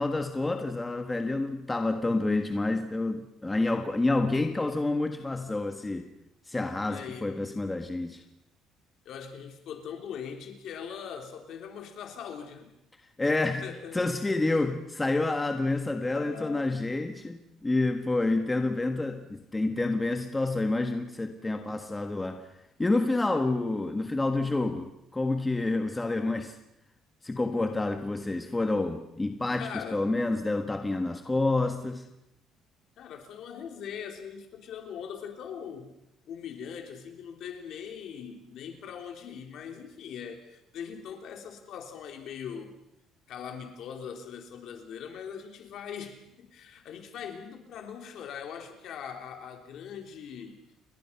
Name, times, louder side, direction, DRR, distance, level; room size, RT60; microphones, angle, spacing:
voice 1, 0.0-6.1 6.5-8.2 13.2-13.7 13.9-22.4 22.8-26.6 27.2-32.0, left 2 dB, 10° left, 1.4 m, -28 dB
voice 2, 6.8-7.3 9.1-12.7 13.2-14.6 16.0-17.1 29.6-30.0 33.0-35.9 36.3-42.7 43.3-50.6, left 7 dB, 55° left, 3.4 m, -41 dB
29.5 x 22.5 x 5.8 m
cardioid pair, 170°, 0 cm